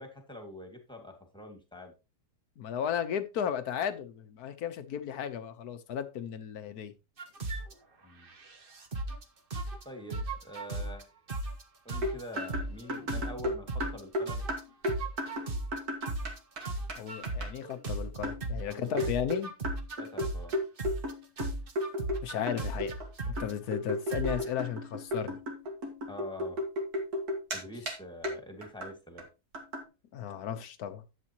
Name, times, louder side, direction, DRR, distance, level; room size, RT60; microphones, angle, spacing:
voice 1, 0.0-1.9 8.0-8.3 9.8-11.1 11.8-14.5 18.7-19.1 20.0-20.6 26.1-26.6 27.5-29.3, left 1 dB, 5° left, 2.1 m, -45 dB
voice 2, 2.6-6.9 16.9-19.5 22.2-22.9 23.3-25.4 30.1-31.0, left 9 dB, 70° left, 1.5 m, -35 dB
sound 1, 7.2-7.7 8.2-9.2 9.5-9.8 10.1-11.0 11.3-11.6 11.9-14.0 14.3-18.7 19.0-21.1 21.4-23.5 24.1-24.7, right 2 dB, 35° right, 1.2 m, -36 dB
sound 2, 12.0-16.6 16.9-17.0 17.2-17.5 18.2-18.4 19.0-22.2 22.5-23.1 23.4-27.6 27.9-28.0 28.2-28.4 28.6-28.9 29.2-29.3 29.5-29.8, left 1 dB, 65° right, 2.5 m, -34 dB
11.0 x 8.1 x 3.0 m
omnidirectional pair, 1.7 m